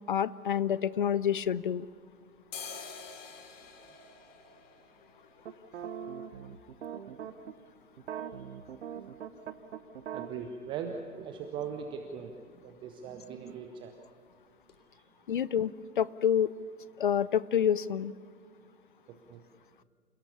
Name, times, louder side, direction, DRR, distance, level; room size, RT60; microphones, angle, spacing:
voice 1, 0.1-1.9 15.3-16.5 17.0-18.1, left 9 dB, 35° left, 19 dB, 0.5 m, -28 dB
sound 1, 0.9-2.0 2.3-10.1 10.4-10.5 10.7-11.3 11.6-11.8 12.1-12.3 12.6-13.3 13.7-13.8 14.3-14.4 14.7-14.8, left 5 dB, 55° left, 3.3 m, -50 dB
sound 2, 5.4-7.5 8.0-10.3, right 8 dB, 50° right, 1.2 m, -41 dB
voice 2, 8.2-8.7 10.1-13.9 14.9-15.2 19.1-19.4, right 6 dB, 10° right, 5 dB, 0.6 m, -41 dB
28.0 x 17.5 x 7.0 m, 2.3 s
figure-of-eight pair, 120°, 44 cm